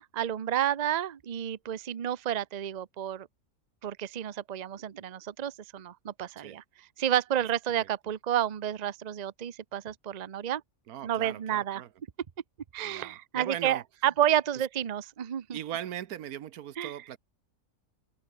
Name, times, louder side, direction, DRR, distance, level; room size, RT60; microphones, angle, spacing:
voice 1, 0.0-3.3 3.8-6.6 7.0-10.6 11.0-11.8 12.7-15.6 16.8-16.9, right 10 dB, 40° right, 0.7 m, -30 dB
voice 2, 10.9-11.9 12.8-13.8 15.5-17.2, right 11 dB, 85° right, 1.4 m, -39 dB
omnidirectional pair, 1.5 m